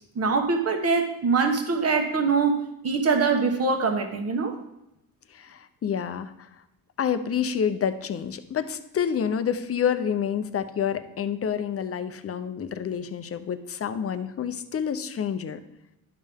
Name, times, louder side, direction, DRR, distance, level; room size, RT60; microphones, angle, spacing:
voice 1, 0.1-4.5, right 4 dB, 40° right, 5 dB, 1.3 m, -23 dB
voice 2, 5.3-6.5 7.0-15.6, left 8 dB, 40° left, 11 dB, 0.6 m, -28 dB
11.5 x 5.5 x 3.6 m, 0.87 s
cardioid pair, 115°, 37 cm